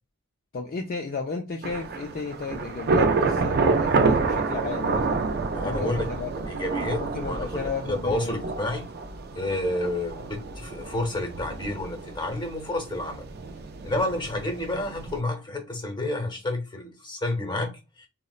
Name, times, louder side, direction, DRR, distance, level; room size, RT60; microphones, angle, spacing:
voice 1, 0.5-5.3 5.6-6.3 7.0-8.4, left 4 dB, 40° left, 0.3 m, -34 dB
Thunder / Rain, 1.6-15.2, right 4 dB, 45° right, 0.4 m, -28 dB
voice 2, 5.5-6.0 6.5-8.9 9.3-13.2 13.8-17.7 18.0-18.1, left 1 dB, 20° left, 0.8 m, -30 dB
3.9 x 2.0 x 2.4 m
head